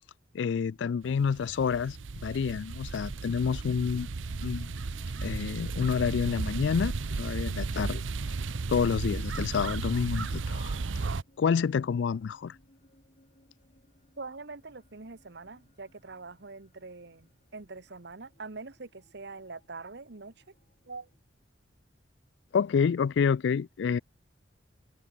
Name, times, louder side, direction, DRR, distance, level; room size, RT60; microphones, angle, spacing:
voice 1, 0.3-2.0 2.2-4.1 4.4-4.7 5.2-8.0 8.7-10.8 11.4-12.6 22.5-24.0, left 6 dB, 65° left, 0.3 m, -28 dB
sound 1, 1.1-11.2, right 4 dB, 80° right, 0.7 m, -34 dB
sound 2, 1.5-21.4, left 1 dB, 40° left, 3.9 m, -62 dB
voice 2, 14.2-20.3 20.9-21.1, right 3 dB, 60° right, 1.2 m, -44 dB
head